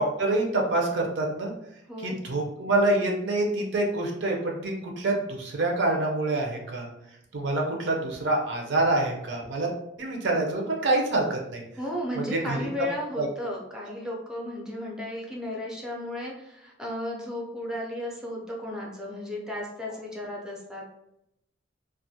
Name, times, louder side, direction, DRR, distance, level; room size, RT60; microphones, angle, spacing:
voice 1, 0.0-1.5 2.0-6.9 7.3-9.7 10.0-11.6 12.2-12.7 13.2-13.3, right 2 dB, 70° right, 0 dB, 0.6 m, -26 dB
voice 2, 11.8-20.8, left 1 dB, 5° right, -2 dB, 0.4 m, -34 dB
2.3 x 2.1 x 2.6 m, 0.83 s
head